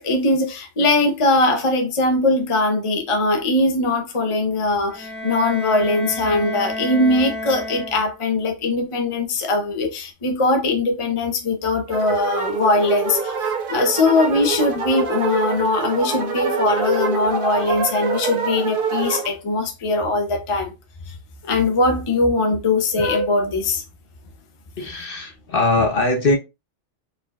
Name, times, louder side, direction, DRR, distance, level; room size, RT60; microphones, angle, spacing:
voice 1, 0.0-20.7 21.1-21.2 21.4-23.8, left 2 dB, 30° left, 0.7 m, -21 dB
Bowed string instrument, 4.9-8.4, left 1 dB, 10° left, 1.5 m, -31 dB
sound 1, 11.9-19.3, right 5 dB, 50° right, 1.0 m, -25 dB
voice 2, 24.8-26.4, left 2 dB, 50° left, 1.0 m, -20 dB
4.5 x 3.9 x 2.3 m
omnidirectional pair, 1.2 m